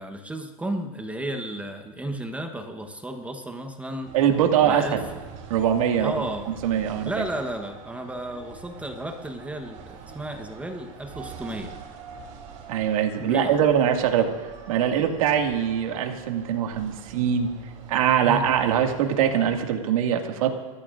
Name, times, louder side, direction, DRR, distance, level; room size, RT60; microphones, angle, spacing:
voice 1, 0.0-4.1 4.6-5.0 6.0-6.5 7.0-11.7 13.2-13.6 18.2-18.5, right 1 dB, 5° right, 5 dB, 1.1 m, -33 dB
sound 1, 4.0-19.6, right 6 dB, 45° right, 3.3 m, -44 dB
voice 2, 4.1-5.0 5.5-6.1 6.5-7.2 12.7-14.3 14.7-17.5 17.9-20.5, right 9 dB, 75° right, 3 dB, 2.1 m, -22 dB
30.0 x 14.0 x 2.6 m, 1.4 s
supercardioid pair, 130°, 18 cm